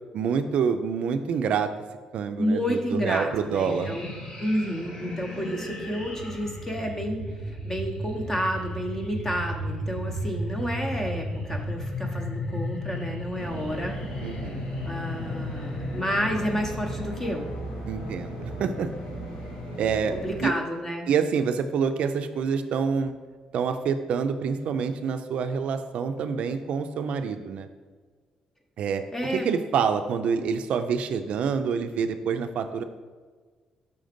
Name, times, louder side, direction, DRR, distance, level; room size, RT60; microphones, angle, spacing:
voice 1, 0.1-1.7 2.1-4.0 14.2-14.7 17.9-18.9 19.8-20.2 20.4-20.5 21.1-23.1 23.5-27.7 28.8-29.0 29.3-32.8, right 6 dB, 60° right, 8 dB, 0.4 m, -27 dB
voice 2, 2.4-4.1 4.4-14.0 14.8-17.5 20.1-21.1 29.1-29.5, equal, 15° left, 2 dB, 0.8 m, -30 dB
sound 1, 3.6-17.1, left 1 dB, 40° left, 1.1 m, -34 dB
sound 2, 13.4-20.4, right 1 dB, 75° left, 1.2 m, -37 dB
5.7 x 3.8 x 5.1 m, 1.5 s
cardioid pair, 165°, 2 cm